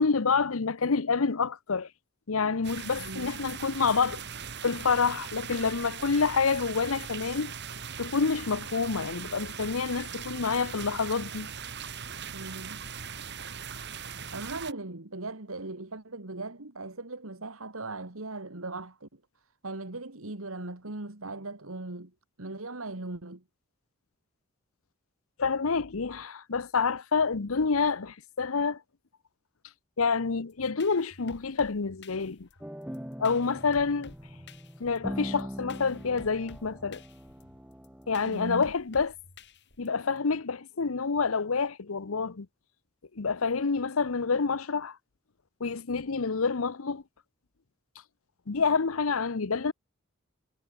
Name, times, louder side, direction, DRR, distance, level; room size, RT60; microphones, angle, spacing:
voice 1, 0.0-1.9 2.3-4.2 4.6-7.5 8.0-11.5 25.4-28.8 30.0-32.5 33.2-34.1 34.8-37.0 38.1-39.1 39.8-42.5 43.2-45.0 45.6-47.0 48.5-49.7, left 5 dB, 80° left, 0.8 m, -28 dB
sound 1, 2.6-14.7, right 7 dB, 55° right, 3.9 m, -40 dB
voice 2, 3.0-3.3 12.3-12.8 14.3-19.2 19.6-22.1 22.4-23.4 38.3-38.7, right 2 dB, 80° right, 2.3 m, -39 dB
sound 2, 30.5-40.2, left 3 dB, 60° left, 7.1 m, -52 dB
sound 3, 32.6-38.6, equal, 5° right, 3.6 m, -42 dB
head